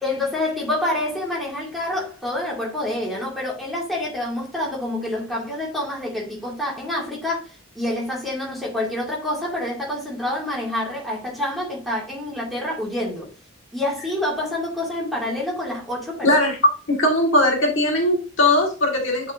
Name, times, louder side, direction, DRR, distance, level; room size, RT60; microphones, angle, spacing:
voice 1, 0.0-13.3 13.7-16.3, left 1 dB, ahead, 2.2 m, -27 dB
voice 2, 16.2-16.6 16.9-19.3, left 1 dB, 65° left, 1.8 m, -19 dB
9.1 x 4.3 x 2.6 m
head